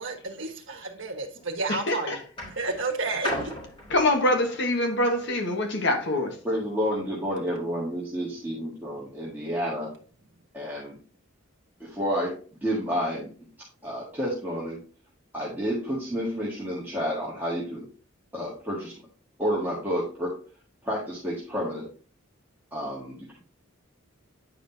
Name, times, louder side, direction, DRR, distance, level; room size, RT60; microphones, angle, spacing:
voice 1, 0.0-2.2 2.5-3.5, right 3 dB, 65° right, 1.4 m, -31 dB
sound 1, 1.4-1.7 2.4-5.6 6.4-6.5, left 1 dB, 25° left, 3.1 m, -36 dB
voice 2, 1.7-2.2 3.9-6.3, left 1 dB, 55° left, 1.5 m, -24 dB
voice 3, 6.4-9.9 10.5-11.0 11.8-13.3 13.8-14.8 15.3-17.9 18.3-18.9 19.4-20.3 20.8-21.9 22.7-23.4, equal, 10° right, 1.8 m, -30 dB
9.5 x 5.0 x 2.8 m
head